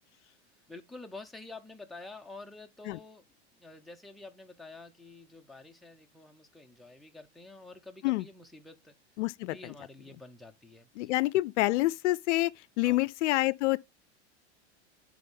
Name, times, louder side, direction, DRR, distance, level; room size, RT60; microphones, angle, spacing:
voice 1, 0.7-3.2 3.5-8.9 9.4-11.1 12.8-13.0, left 3 dB, ahead, 0.6 m, -49 dB
voice 2, 9.2-9.7 11.0-13.8, left 18 dB, 75° left, 0.5 m, -27 dB
10.5 x 3.6 x 3.7 m
supercardioid pair, 125°, 36 cm